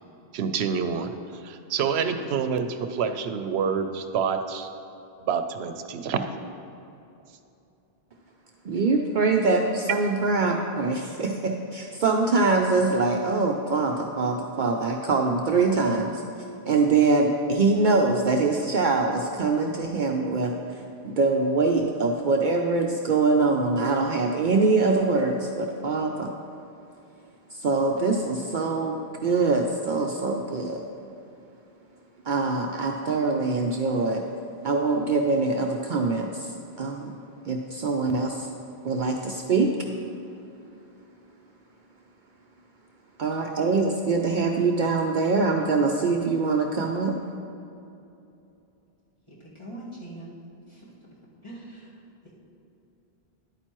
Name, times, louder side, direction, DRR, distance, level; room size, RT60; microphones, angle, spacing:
voice 1, 0.3-1.1 1.4-4.7 5.3-6.2, right 6 dB, 85° right, 8 dB, 0.8 m, -27 dB
voice 2, 8.6-16.2 16.7-20.5 21.0-26.3 27.5-30.8 32.3-34.2 34.6-36.5 36.8-37.2 37.5-38.5 38.8-39.7 43.2-47.1, right 3 dB, 60° right, 2 dB, 0.6 m, -24 dB
voice 3, 49.3-50.3 50.7-50.9 51.4-52.3, right 1 dB, 30° left, -7 dB, 1.9 m, -43 dB
10.5 x 8.9 x 3.0 m, 2.8 s
omnidirectional pair, 1.0 m